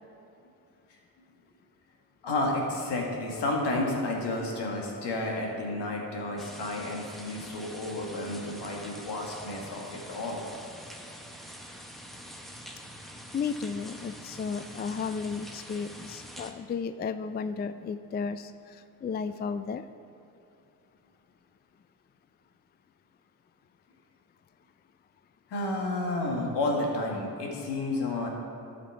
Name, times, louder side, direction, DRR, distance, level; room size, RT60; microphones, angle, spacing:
voice 1, 2.2-10.4 25.5-28.3, left 2 dB, 75° left, 0 dB, 1.8 m, -31 dB
sound 1, 6.4-16.5, equal, ahead, 1.2 m, -45 dB
voice 2, 13.3-18.5 19.0-19.8, left 5 dB, 25° left, 11 dB, 0.3 m, -33 dB
11.5 x 5.9 x 4.7 m, 2.8 s
supercardioid pair, 50°, 42 cm